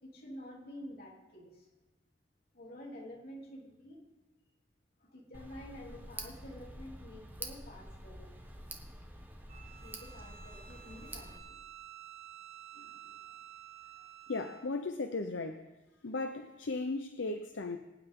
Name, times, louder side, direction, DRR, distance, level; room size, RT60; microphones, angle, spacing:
voice 1, 0.0-1.6 2.5-4.0 5.0-8.6 9.8-11.6, left 1 dB, 55° left, -3 dB, 3.2 m, -49 dB
Tick, 5.3-11.4, right 1 dB, 10° right, 1.2 m, -47 dB
Bowed string instrument, 9.5-14.7, right 10 dB, 35° right, 1.6 m, -51 dB
voice 2, 14.3-15.7 16.0-17.8, left 3 dB, 75° left, 7 dB, 0.7 m, -36 dB
24.0 x 9.1 x 3.8 m, 1.1 s
head